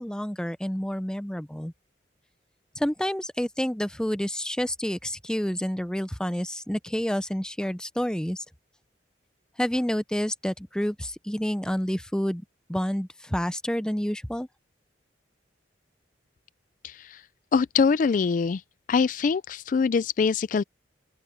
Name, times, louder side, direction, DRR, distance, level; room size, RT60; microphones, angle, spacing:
voice 1, 0.0-1.7 2.8-8.4 9.6-14.5, equal, 5° left, 0.6 m, -29 dB
voice 2, 16.8-17.2 17.5-18.6 18.9-20.6, left 5 dB, 45° left, 0.3 m, -23 dB
open air
head